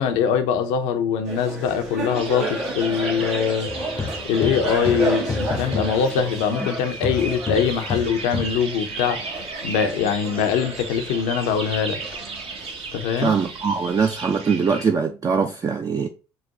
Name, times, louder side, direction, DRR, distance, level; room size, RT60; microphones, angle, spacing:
voice 1, 0.0-3.7 4.2-12.0 12.9-13.3, left 7 dB, 75° left, 0.6 m, -23 dB
sound 1, 1.2-14.0, right 2 dB, 70° right, 1.2 m, -33 dB
sound 2, 2.1-14.9, right 4 dB, 55° right, 0.8 m, -35 dB
sound 3, 3.7-6.7 7.0-8.6, left 4 dB, 20° left, 0.6 m, -30 dB
voice 2, 13.2-16.1, right 5 dB, 30° right, 0.4 m, -22 dB
3.9 x 2.2 x 3.6 m
hypercardioid pair, 60°, 12 cm